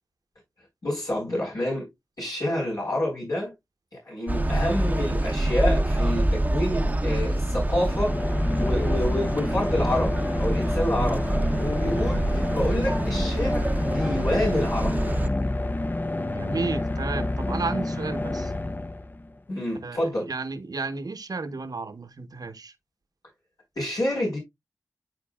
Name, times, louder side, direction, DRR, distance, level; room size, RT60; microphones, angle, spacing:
voice 1, 0.8-1.9 2.2-3.5 4.0-8.2 8.6-11.3 11.6-15.0 19.5-20.3 23.8-24.4, left 1 dB, 70° left, 4.3 m, -28 dB
sound 1, 4.3-15.3, right 1 dB, 25° right, 0.8 m, -26 dB
sound 2, 7.5-19.4, left 2 dB, 30° left, 0.6 m, -29 dB
voice 2, 16.3-18.5 19.8-22.7, right 3 dB, 70° right, 1.0 m, -32 dB
10.5 x 4.0 x 2.3 m
cardioid pair, 40°, 7 cm